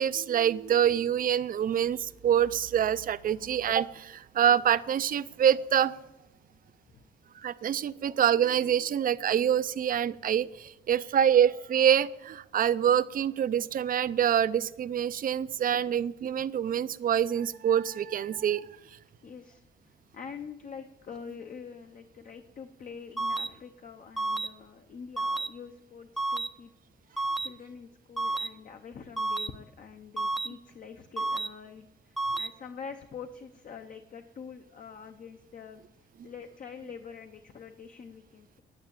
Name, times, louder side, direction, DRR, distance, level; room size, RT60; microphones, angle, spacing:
voice 1, 0.0-5.9 7.4-18.7, right 9 dB, 50° right, 16 dB, 0.5 m, -26 dB
voice 2, 19.2-26.7 27.4-35.8 36.2-38.6, left 6 dB, 45° left, 5 dB, 0.8 m, -45 dB
sound 1, 23.2-23.5 24.2-24.5 25.2-25.5 26.2-26.5 27.2-27.5 28.2-28.5 29.2-29.5 30.2-30.5 31.2-31.5 32.2-32.5, right 2 dB, ahead, 0.5 m, -30 dB
10.0 x 9.5 x 8.9 m, 0.92 s
wide cardioid pair, 160°, 19 cm